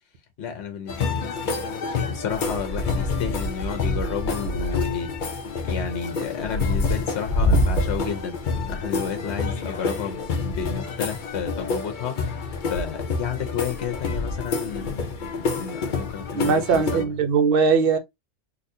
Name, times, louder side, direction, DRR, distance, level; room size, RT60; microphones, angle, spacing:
voice 1, 0.4-17.1, left 7 dB, 70° left, 1.0 m, -32 dB
sound 1, 0.9-17.0, left 3 dB, 50° left, 0.7 m, -27 dB
voice 2, 16.3-18.0, right 5 dB, 55° right, 0.8 m, -20 dB
4.0 x 2.4 x 2.6 m
omnidirectional pair, 1.2 m